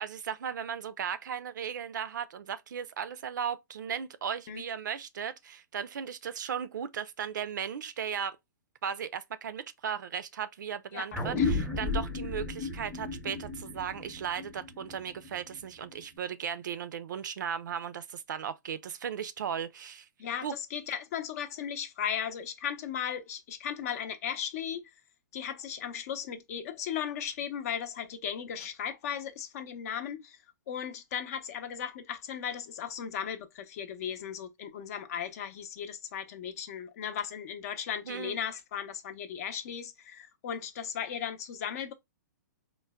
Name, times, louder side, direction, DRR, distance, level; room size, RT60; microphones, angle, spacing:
voice 1, 0.0-8.4 8.8-20.1 20.4-20.6 38.1-38.4, right 8 dB, 75° right, 0.4 m, -36 dB
sound 1, 11.1-16.0, left 3 dB, 5° left, 0.7 m, -34 dB
voice 2, 20.2-24.9 25.3-30.4 30.7-41.9, left 8 dB, 55° left, 0.6 m, -36 dB
4.4 x 2.1 x 2.2 m
hypercardioid pair, 135°, 10 cm